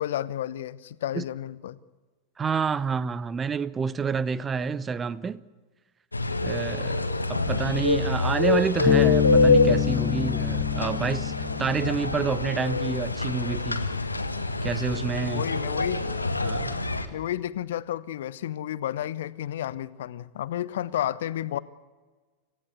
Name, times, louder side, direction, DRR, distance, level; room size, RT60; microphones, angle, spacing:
voice 1, 0.0-1.8 6.7-7.0 15.3-16.1 17.1-21.6, left 12 dB, 60° left, 0.9 m, -31 dB
voice 2, 2.4-5.4 6.4-11.3 11.6-13.9 14.6-15.5 16.4-16.9, right 5 dB, 20° right, 0.8 m, -28 dB
sound 1, 6.1-17.1, left 3 dB, 80° left, 1.6 m, -26 dB
Bass guitar, 8.9-12.6, left 13 dB, 30° left, 0.7 m, -27 dB
27.0 x 16.5 x 8.2 m
figure-of-eight pair, 90°, 0 cm